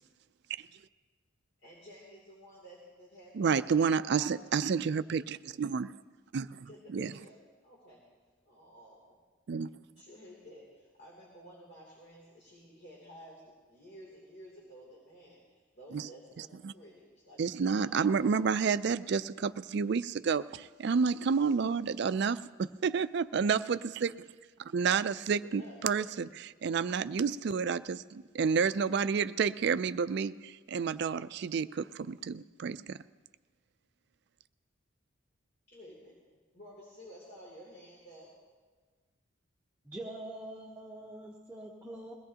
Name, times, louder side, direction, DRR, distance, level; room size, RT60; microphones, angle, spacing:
voice 1, 1.6-4.5 6.6-7.4 7.6-8.0 8.4-9.2 10.0-17.4 17.7-18.5 25.3-26.1 35.7-36.2 36.5-38.3, equal, 50° left, 2.9 m, -52 dB
voice 2, 3.3-5.9 6.3-7.1 9.5-9.7 15.9-16.1 16.6-16.7 17.4-24.2 24.7-26.3 26.6-33.0, right 6 dB, 55° right, 0.3 m, -30 dB
voice 3, 39.8-42.1, right 1 dB, 10° right, 0.9 m, -44 dB
21.5 x 16.5 x 2.9 m
head